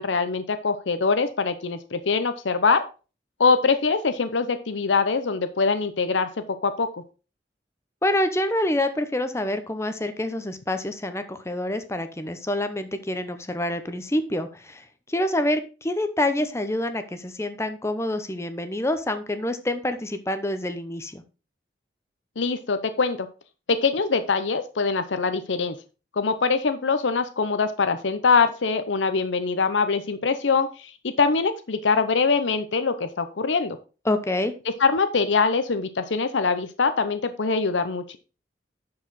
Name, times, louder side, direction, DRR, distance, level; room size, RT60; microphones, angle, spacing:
voice 1, 0.0-2.8 3.4-6.3 6.6-6.9 22.4-23.3 23.7-25.8 26.2-33.8 34.8-38.2, left 4 dB, 85° left, 10 dB, 0.7 m, -23 dB
voice 2, 8.0-21.2 34.0-34.5, left 1 dB, 15° left, 9 dB, 0.7 m, -27 dB
10.5 x 4.8 x 4.0 m, 0.33 s
head